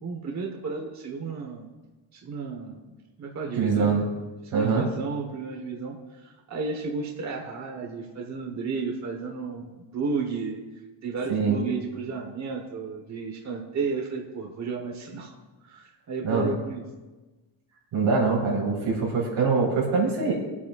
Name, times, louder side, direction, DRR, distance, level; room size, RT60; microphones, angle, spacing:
voice 1, 0.0-1.7 2.1-2.8 3.2-4.0 4.4-10.6 11.0-15.3 15.6-16.8, right 4 dB, 35° right, 2 dB, 1.0 m, -33 dB
voice 2, 3.6-4.0 4.5-4.9 11.3-11.6 16.2-16.5 17.9-20.3, right 4 dB, 90° right, -3 dB, 3.9 m, -23 dB
25.0 x 8.4 x 2.3 m, 1.2 s
cardioid pair, 155°, 47 cm